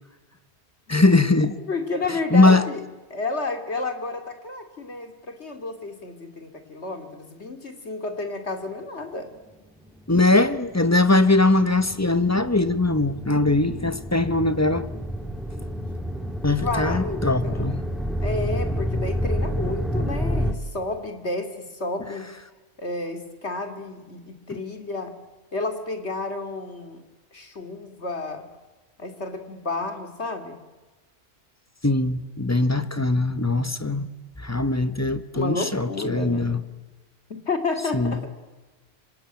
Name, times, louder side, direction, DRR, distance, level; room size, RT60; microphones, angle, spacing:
voice 1, 0.9-1.6 2.3-2.7 10.1-14.9 16.4-17.8 31.8-34.1 34.4-36.6 37.9-38.2, left 2 dB, 15° left, 1.1 m, -21 dB
voice 2, 1.7-2.8 3.1-9.3 16.5-17.7 18.2-22.3 22.8-25.2 25.5-27.0 27.3-28.4 29.0-30.6 35.3-36.6 37.3-38.3, left 3 dB, 80° left, 2.9 m, -31 dB
sound 1, 10.3-20.5, equal, ahead, 2.2 m, -29 dB
25.5 x 25.5 x 9.0 m
omnidirectional pair, 1.1 m